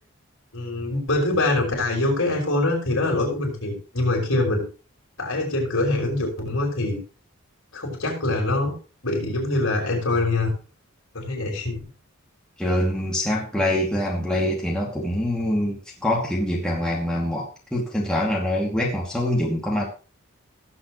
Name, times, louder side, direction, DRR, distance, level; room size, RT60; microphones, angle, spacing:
voice 1, 0.5-4.6 5.2-7.0 7.7-8.7 9.0-10.5 11.1-11.9, left 2 dB, 60° left, 0 dB, 5.4 m, -24 dB
voice 2, 12.6-19.8, left 1 dB, 5° left, -4 dB, 2.4 m, -24 dB
19.0 x 7.9 x 3.1 m, 0.35 s
head